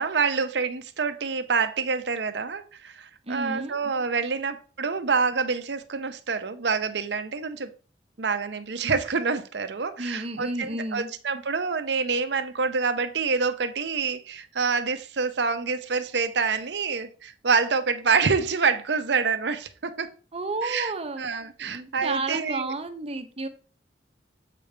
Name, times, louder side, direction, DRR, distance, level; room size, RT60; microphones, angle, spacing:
voice 1, 0.0-7.7 8.2-20.1 20.6-20.9 21.2-22.7, right 5 dB, 75° right, 0.7 m, -27 dB
voice 2, 3.3-3.8 10.0-11.1 20.3-21.3 21.6-23.5, right 2 dB, 35° right, 0.8 m, -31 dB
7.6 x 5.2 x 3.3 m
head